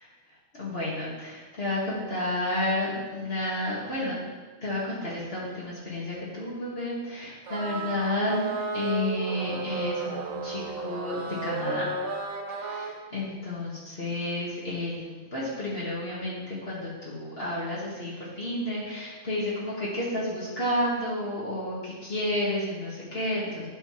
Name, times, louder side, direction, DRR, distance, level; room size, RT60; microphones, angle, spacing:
voice 1, 0.5-4.2 4.6-8.5 8.7-11.9 12.6-23.7, left 1 dB, 60° left, -7 dB, 1.9 m, -31 dB
sound 1, 7.5-12.9, right 4 dB, 80° right, 1.3 m, -33 dB
11.0 x 6.9 x 2.9 m, 1.3 s
omnidirectional pair, 1.2 m